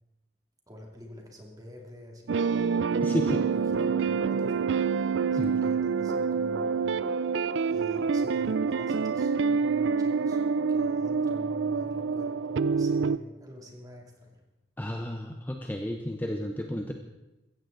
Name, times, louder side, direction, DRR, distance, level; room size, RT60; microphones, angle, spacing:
voice 1, 0.7-7.3 7.7-10.4 10.7-14.4, left 1 dB, 20° right, 0 dB, 2.5 m, -47 dB
sound 1, 2.3-13.2, right 5 dB, 75° right, 0.4 m, -27 dB
voice 2, 3.0-3.4 5.4-5.6 14.8-16.9, equal, 10° left, 3 dB, 0.8 m, -32 dB
15.5 x 15.0 x 3.9 m, 1.0 s
head